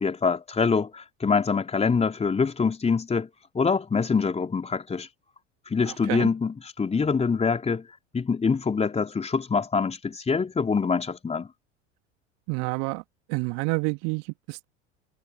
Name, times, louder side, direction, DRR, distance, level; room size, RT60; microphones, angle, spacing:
voice 1, 0.0-3.3 3.5-5.1 5.7-7.9 8.1-11.5, left 5 dB, 15° left, 3.7 m, -25 dB
voice 2, 5.8-6.3 12.5-13.0 13.3-14.6, right 33 dB, 45° right, 1.8 m, -29 dB
figure-of-eight pair, 80°, 37 cm